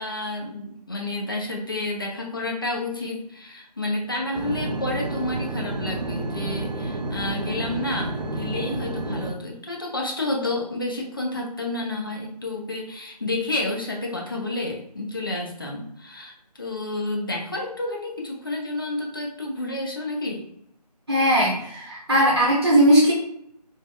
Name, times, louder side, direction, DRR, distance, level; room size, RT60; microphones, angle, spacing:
voice 1, 0.0-20.4, left 2 dB, 35° left, 0 dB, 0.5 m, -30 dB
sound 1, 4.3-9.3, right 2 dB, 85° right, 0.6 m, -30 dB
voice 2, 21.1-23.1, right 1 dB, 35° right, -6 dB, 0.8 m, -18 dB
3.3 x 2.1 x 2.3 m, 0.73 s
figure-of-eight pair, 160°, 21 cm